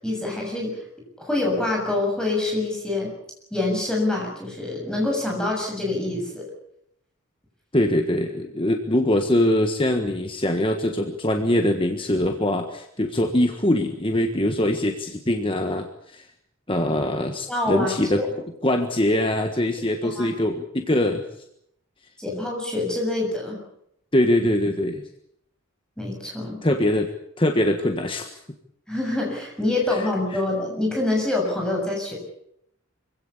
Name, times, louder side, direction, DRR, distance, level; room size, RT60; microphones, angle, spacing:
voice 1, 0.0-0.8 1.2-3.1 3.5-6.4 17.5-18.3 20.0-20.3 22.2-23.6 26.0-26.6 28.9-32.2, left 2 dB, 5° left, -1 dB, 7.0 m, -26 dB
voice 2, 7.7-16.3 16.7-18.2 18.6-21.2 24.1-25.0 26.6-27.1 27.4-28.3 29.9-30.0 30.3-30.4, left 1 dB, 25° left, 5 dB, 1.5 m, -23 dB
25.0 x 16.5 x 8.5 m, 0.74 s
head